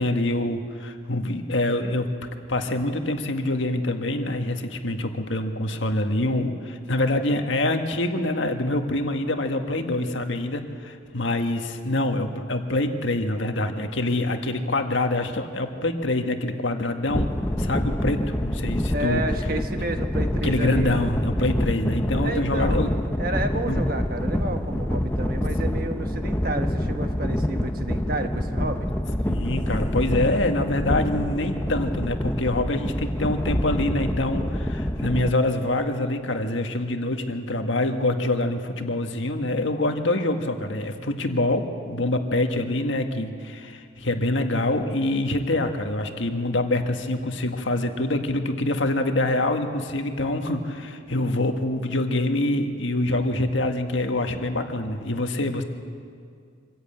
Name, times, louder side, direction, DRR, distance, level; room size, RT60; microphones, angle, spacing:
voice 1, 0.0-2.1 2.5-17.3 17.6-19.2 20.4-22.9 23.7-23.8 29.3-55.6, left 2 dB, 75° left, 5 dB, 1.6 m, -25 dB
sound 1, 17.1-35.3, equal, 10° left, 0.7 m, -26 dB
voice 2, 18.9-20.9 22.2-22.9 23.2-28.9, right 1 dB, 50° right, 6 dB, 1.5 m, -31 dB
25.0 x 14.5 x 9.0 m, 2.2 s
head